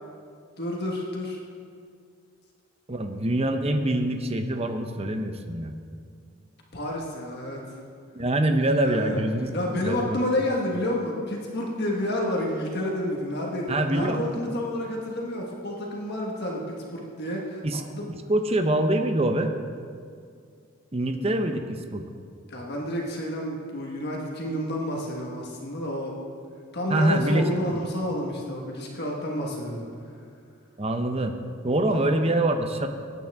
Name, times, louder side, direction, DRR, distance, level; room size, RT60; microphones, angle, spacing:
voice 1, 0.6-1.4 6.7-7.7 8.8-9.2 9.5-17.6 17.9-18.1 22.5-26.2 26.7-29.9 31.9-32.0, left 1 dB, 50° left, -1 dB, 1.5 m, -30 dB
voice 2, 2.9-5.7 8.1-9.5 9.8-10.2 13.7-14.2 17.6-17.8 18.3-19.5 20.9-22.1 26.9-27.8 30.8-31.4 31.6-32.9, right 1 dB, 30° right, 6 dB, 0.8 m, -25 dB
19.0 x 9.1 x 3.6 m, 2.3 s
head